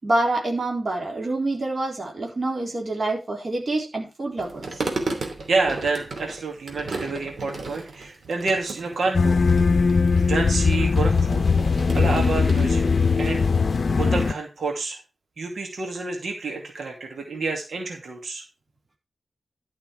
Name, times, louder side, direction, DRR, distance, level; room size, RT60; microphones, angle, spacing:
voice 1, 0.0-4.7, right 2 dB, 40° right, 0 dB, 3.9 m, -26 dB
sound 1, 4.4-12.7, right 3 dB, 60° right, 2.7 m, -35 dB
voice 2, 5.2-9.4 10.2-12.9 13.2-13.4 13.9-15.0 15.4-18.4, right 3 dB, 90° right, 2 dB, 2.5 m, -29 dB
sound 2, 9.1-14.3, left 4 dB, 50° left, 0.7 m, -20 dB
12.0 x 6.2 x 4.6 m, 0.28 s
wide cardioid pair, 155°, 0 cm